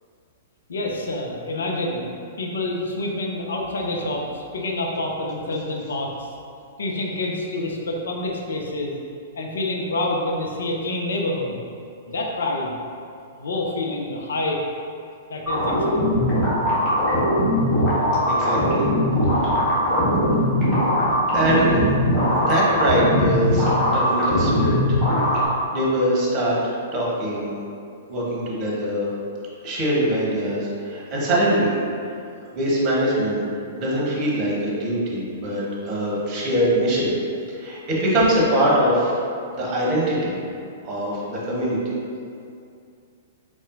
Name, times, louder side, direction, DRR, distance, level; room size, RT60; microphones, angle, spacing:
voice 1, 0.7-2.0 2.4-6.3 6.8-9.0 9.4-11.6 12.1-12.7 13.4-14.6 15.3-16.1, left 2 dB, 70° left, 0 dB, 0.5 m, -27 dB
sound 1, 15.5-25.5, equal, 25° left, 1.3 m, -20 dB
voice 2, 18.3-18.9 21.3-21.8 22.3-25.0 25.7-26.6 26.9-27.6 28.1-29.1 29.6-31.8 32.4-33.4 33.7-37.1 37.5-39.2 39.5-40.4 40.8-41.8, right 1 dB, 35° right, -5 dB, 1.1 m, -23 dB
4.1 x 3.5 x 2.5 m, 2.5 s
figure-of-eight pair, 110°, 0 cm